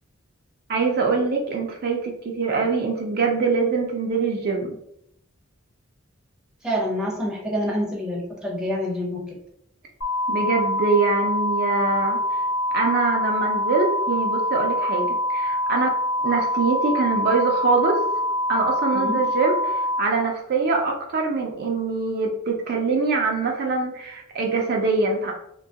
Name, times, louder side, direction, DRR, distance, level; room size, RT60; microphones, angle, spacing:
voice 1, 0.7-4.8 10.3-12.4 12.7-18.0 18.5-25.3, right 4 dB, 45° right, 1 dB, 0.4 m, -24 dB
voice 2, 6.6-9.4 18.9-19.2, equal, 5° right, -4 dB, 0.6 m, -27 dB
sound 1, 10.0-20.0, left 1 dB, 60° left, 0.7 m, -25 dB
2.7 x 2.2 x 2.7 m, 0.76 s
head